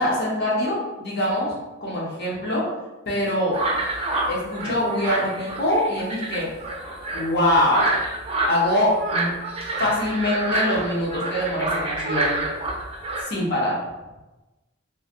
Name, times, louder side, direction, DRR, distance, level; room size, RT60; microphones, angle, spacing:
voice 1, 0.0-2.7 3.1-3.6 4.3-6.5 7.1-7.9 8.5-9.3 9.8-12.4 13.2-13.8, left 1 dB, 55° left, -5 dB, 0.9 m, -23 dB
sound 1, 3.5-13.2, right 2 dB, 30° right, 0.5 m, -27 dB
3.1 x 2.6 x 2.5 m, 1.1 s
head